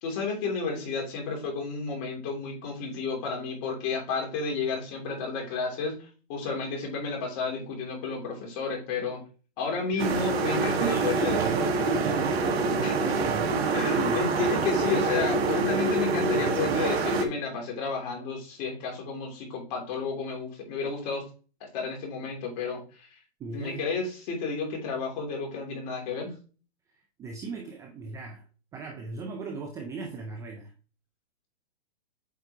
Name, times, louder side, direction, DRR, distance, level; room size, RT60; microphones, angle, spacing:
voice 1, 0.0-9.2 9.6-11.4 12.8-12.9 13.7-21.2 21.6-23.2 23.5-26.4, left 4 dB, 40° left, 2.9 m, -32 dB
sound 1, 10.0-17.3, right 3 dB, 65° right, 1.5 m, -26 dB
voice 2, 10.8-14.2 14.7-14.8 23.4-23.8 27.2-28.4 28.7-30.7, right 4 dB, 10° right, 0.4 m, -38 dB
8.2 x 4.5 x 2.8 m
hypercardioid pair, 135°, 33 cm